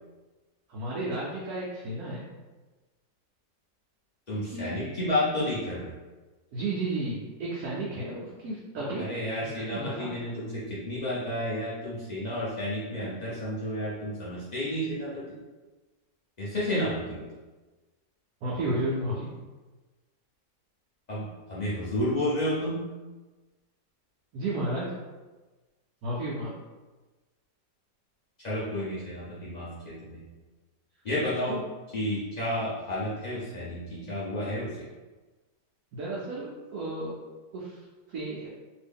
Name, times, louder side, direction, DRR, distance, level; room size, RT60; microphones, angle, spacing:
voice 1, 0.7-2.2 4.5-4.8 6.5-9.0 9.4-10.1 18.4-19.3 24.3-24.9 26.0-26.5 31.5-31.6 35.9-37.2 37.5-37.8 38.1-38.5, right 1 dB, 65° right, -6 dB, 1.0 m, -32 dB
voice 2, 4.3-5.9 9.0-15.4 16.4-17.3 21.1-22.8 28.4-30.2 31.0-31.6 31.9-34.9, left 1 dB, 85° left, -9 dB, 0.3 m, -31 dB
2.9 x 2.6 x 3.5 m, 1.2 s
omnidirectional pair, 2.0 m